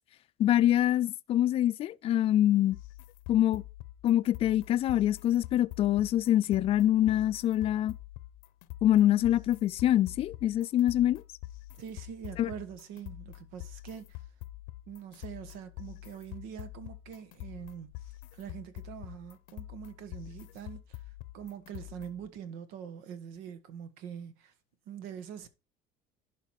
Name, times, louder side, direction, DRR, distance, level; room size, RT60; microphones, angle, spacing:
voice 1, 0.4-2.8 3.3-3.6 4.0-8.0 8.8-11.2 12.4-12.5, left 12 dB, 40° left, 0.4 m, -25 dB
sound 1, 2.7-22.3, left 16 dB, 75° left, 0.7 m, -46 dB
voice 2, 11.8-14.2 14.9-17.9 18.3-21.0 21.3-24.5 24.9-25.5, right 8 dB, 85° right, 1.3 m, -44 dB
11.5 x 5.1 x 4.7 m
cardioid pair, 135°, 15 cm